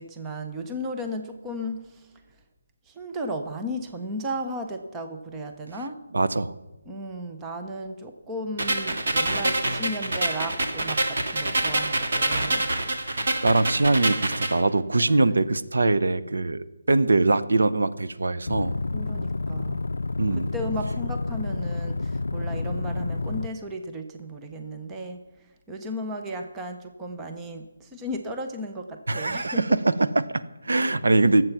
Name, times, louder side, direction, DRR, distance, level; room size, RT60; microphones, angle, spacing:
voice 1, 0.0-2.1 2.9-6.0 6.9-12.7 15.1-15.2 18.9-19.9 20.5-29.8, equal, 5° right, 4 dB, 0.5 m, -35 dB
voice 2, 6.1-6.5 13.4-18.8 20.2-20.5 29.1-31.4, right 2 dB, 80° right, 12 dB, 0.9 m, -22 dB
sound 1, 8.6-14.6, right 2 dB, 40° right, 1.9 m, -26 dB
sound 2, 18.5-23.5, left 3 dB, 80° left, 0.4 m, -29 dB
19.5 x 7.8 x 5.8 m, 1.1 s
hypercardioid pair, 180°, 0 cm